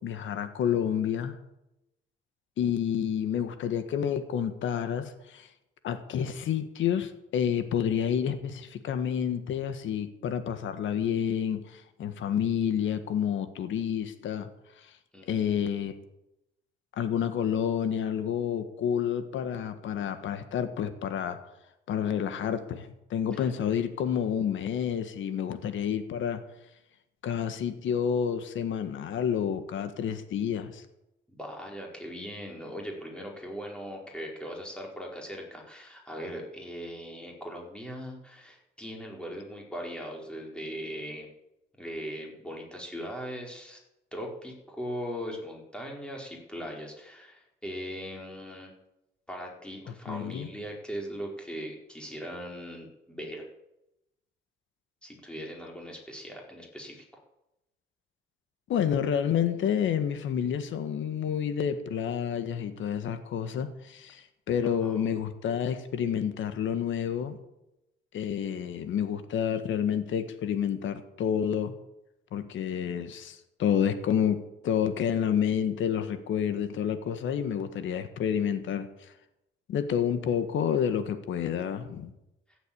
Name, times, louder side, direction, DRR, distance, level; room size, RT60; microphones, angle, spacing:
voice 1, 0.0-1.4 2.6-5.5 5.8-14.5 15.3-15.9 17.0-21.4 21.9-26.4 27.2-30.8 50.1-50.5 58.7-67.4 68.1-71.7 72.3-78.9 79.7-82.1, left 8 dB, 75° left, 10 dB, 1.6 m, -29 dB
voice 2, 15.1-15.4 23.3-23.5 31.3-41.3 41.8-43.8 44.1-48.7 49.3-53.5 55.0-57.0 64.8-65.2, equal, 5° left, -1 dB, 4.6 m, -39 dB
15.0 x 8.2 x 8.6 m, 0.89 s
cardioid pair, 90°, 20 cm